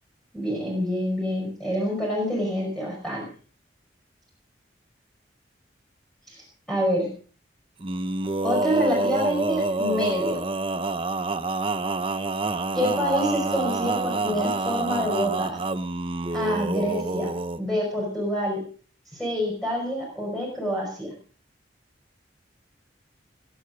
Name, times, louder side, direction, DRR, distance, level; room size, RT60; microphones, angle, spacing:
voice 1, 0.3-3.2 6.3-7.1 8.4-10.4 12.7-15.6 16.3-18.6 19.1-21.1, equal, 5° left, -3 dB, 5.3 m, -27 dB
Male singing, 7.8-17.6, right 2 dB, 30° right, 0.9 m, -27 dB
21.5 x 10.0 x 5.1 m, 0.43 s
head